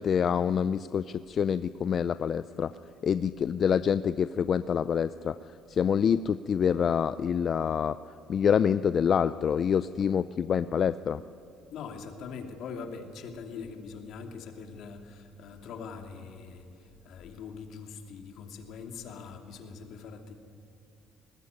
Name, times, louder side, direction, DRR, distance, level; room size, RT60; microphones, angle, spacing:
voice 1, 0.0-2.7 3.0-5.4 5.7-8.0 8.3-11.2, left 7 dB, 45° left, 13 dB, 0.5 m, -26 dB
voice 2, 11.7-20.3, left 5 dB, 70° left, 4 dB, 2.8 m, -42 dB
20.5 x 19.5 x 9.6 m, 2.4 s
cardioid pair, 115°, 0 cm